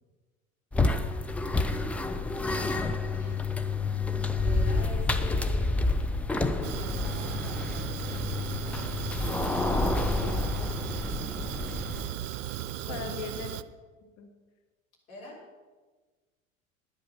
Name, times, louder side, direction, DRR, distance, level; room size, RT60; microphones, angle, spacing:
sound 1, 0.7-12.2, left 3 dB, 5° left, 0.3 m, -29 dB
voice 1, 2.5-3.5 4.4-5.9 6.6-8.0 11.0-12.3 12.8-13.1 15.1-15.4, left 2 dB, 75° left, -4 dB, 3.8 m, -46 dB
Fire, 6.6-13.6, right 12 dB, 60° right, 0.6 m, -36 dB
voice 2, 12.9-13.6 14.0-14.3, left 7 dB, 40° left, 5 dB, 1.3 m, -39 dB
10.5 x 9.7 x 5.6 m, 1.3 s
figure-of-eight pair, 75°, 41 cm